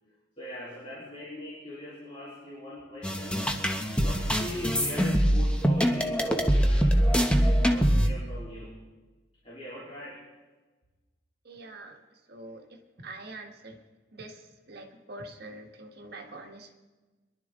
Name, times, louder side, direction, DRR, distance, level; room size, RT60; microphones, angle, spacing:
voice 1, 0.4-3.5 4.0-8.8 9.4-10.3, equal, 30° left, -7 dB, 3.6 m, -41 dB
sound 1, 3.0-8.1, equal, 5° left, 1.0 m, -24 dB
voice 2, 11.4-12.0 12.3-12.6 13.0-13.8 14.1-14.4 14.7-16.8, right 2 dB, 55° right, 3 dB, 1.6 m, -44 dB
23.5 x 11.5 x 3.7 m, 1.2 s
head